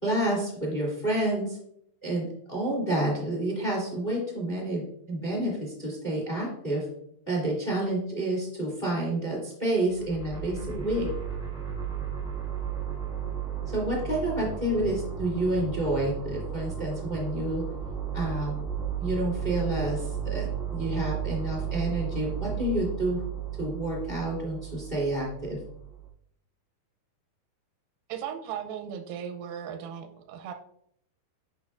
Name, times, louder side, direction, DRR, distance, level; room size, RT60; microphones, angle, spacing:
voice 1, 0.0-1.6 2.0-6.9 7.3-11.1 13.7-17.7 18.1-18.6 19.0-23.2 23.6-25.6, right 1 dB, 15° left, -3 dB, 2.1 m, -29 dB
sound 1, 9.9-26.1, right 8 dB, ahead, 1.6 m, -34 dB
voice 2, 28.1-30.5, right 8 dB, 85° right, 7 dB, 2.4 m, -37 dB
9.7 x 5.5 x 2.5 m, 0.70 s
omnidirectional pair, 4.3 m